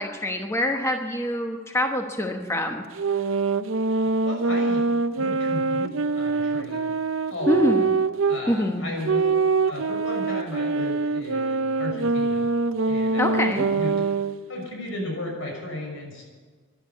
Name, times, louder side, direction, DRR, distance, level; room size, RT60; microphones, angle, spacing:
voice 1, 0.0-2.8 7.5-7.9 8.5-8.9 13.2-13.6, left 1 dB, 15° left, 3 dB, 1.1 m, -25 dB
sound 1, 2.9-8.4 9.0-14.4, right 4 dB, 70° right, 0.6 m, -24 dB
voice 2, 3.9-4.8 5.1-6.9 7.3-7.6 8.2-9.4 9.6-12.5 12.9-14.0 14.5-16.2, left 1 dB, 75° left, 1 dB, 6.2 m, -35 dB
13.5 x 11.5 x 8.3 m, 1.5 s
head